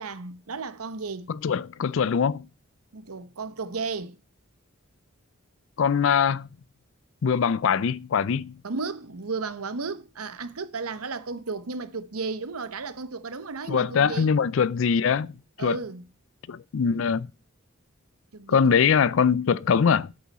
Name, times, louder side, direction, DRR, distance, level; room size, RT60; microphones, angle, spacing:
voice 1, 0.0-1.3 2.9-4.2 8.6-14.4 15.6-16.0 18.3-19.0, right 4 dB, 85° right, 1.0 m, -34 dB
voice 2, 1.3-2.5 5.8-6.5 7.2-8.6 13.7-15.8 16.5-17.3 18.5-20.1, left 6 dB, 60° left, 0.4 m, -23 dB
8.5 x 7.7 x 4.1 m
head